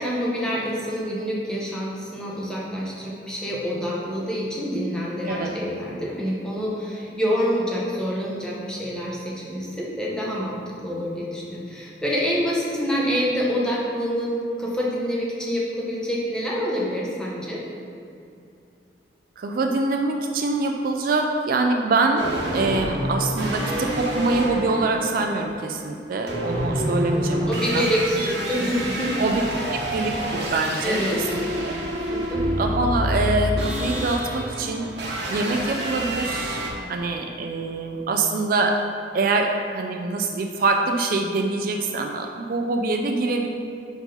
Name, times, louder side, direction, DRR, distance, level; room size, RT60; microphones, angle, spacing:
voice 1, 0.0-17.6 27.1-29.2 30.8-31.2 32.1-32.5, equal, 5° left, -5 dB, 0.9 m, -27 dB
voice 2, 19.4-22.3 22.5-27.9 29.2-29.4 29.7-31.7 32.6-34.9 35.3-36.6 36.9-38.7 39.1-43.5, right 3 dB, 50° right, 3 dB, 0.4 m, -24 dB
sound 1, 22.2-36.7, equal, 65° right, 1.0 m, -28 dB
5.4 x 4.8 x 3.9 m, 2.6 s
head